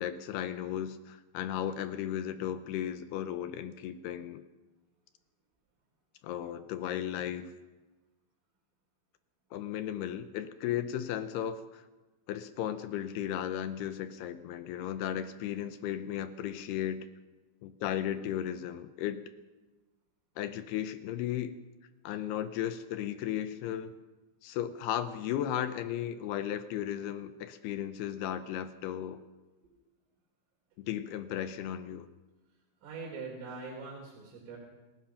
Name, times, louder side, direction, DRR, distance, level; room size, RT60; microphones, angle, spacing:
voice 1, 0.0-4.4 6.2-7.5 9.5-11.8 12.3-17.1 17.6-19.3 20.4-21.5 22.0-23.9 24.4-29.2 30.8-32.1, left 10 dB, 80° left, 11 dB, 2.4 m, -35 dB
voice 2, 32.8-34.6, right 4 dB, 90° right, -2 dB, 6.0 m, -42 dB
27.0 x 17.0 x 5.8 m, 1.2 s
omnidirectional pair, 5.6 m